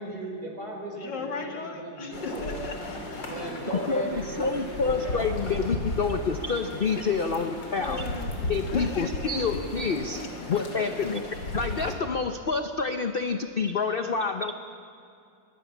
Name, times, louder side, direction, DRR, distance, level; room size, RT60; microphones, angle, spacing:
voice 1, 0.0-2.6 3.2-5.3, right 1 dB, 55° right, 1 dB, 4.7 m, -37 dB
voice 2, 1.0-3.5 7.0-7.3 7.8-9.7 10.2-11.1, left 3 dB, 70° left, 4 dB, 2.6 m, -38 dB
sound 1, 2.1-11.9, left 1 dB, 85° left, 3.6 m, -35 dB
voice 3, 3.9-8.0 8.5-10.2 10.5-11.2 11.5-14.5, left 4 dB, 45° left, 7 dB, 0.8 m, -28 dB
25.0 x 20.5 x 7.2 m, 2.5 s
omnidirectional pair, 1.9 m